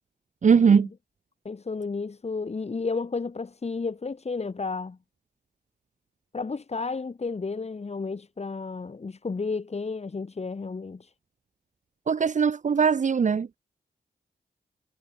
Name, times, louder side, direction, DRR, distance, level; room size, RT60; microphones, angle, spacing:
voice 1, 0.4-0.9 12.1-13.6, right 6 dB, 50° right, 0.9 m, -20 dB
voice 2, 1.5-5.0 6.3-11.1, left 4 dB, 40° left, 3.4 m, -32 dB
cardioid pair, 75°, 16 cm